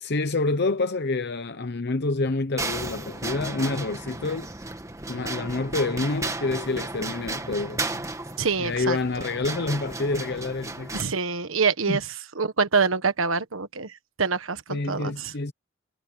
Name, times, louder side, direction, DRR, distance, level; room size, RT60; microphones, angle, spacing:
voice 1, 0.0-4.5 5.1-8.1 8.6-11.1 11.9-12.0 14.7-15.5, left 3 dB, 55° left, 0.8 m, -28 dB
sound 1, 2.6-11.0, right 2 dB, 15° right, 1.6 m, -34 dB
voice 2, 8.4-9.0 10.9-12.0 12.4-13.9 14.2-15.3, right 5 dB, 90° right, 1.4 m, -25 dB
head